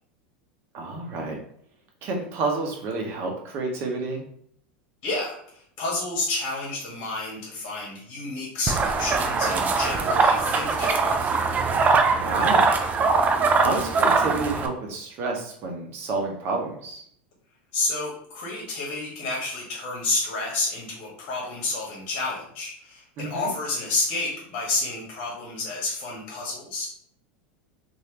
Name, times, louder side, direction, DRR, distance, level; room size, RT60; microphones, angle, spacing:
voice 1, 0.7-1.4 2.0-4.2 12.1-12.7 13.5-17.0 23.2-23.5, right 3 dB, 45° right, 1 dB, 1.0 m, -29 dB
voice 2, 5.0-11.4 17.7-26.9, left 3 dB, 55° left, -3 dB, 1.4 m, -30 dB
sound 1, 8.7-14.7, right 4 dB, 30° right, 0.4 m, -22 dB
3.2 x 2.7 x 2.9 m, 0.64 s
supercardioid pair, 115°, 6 cm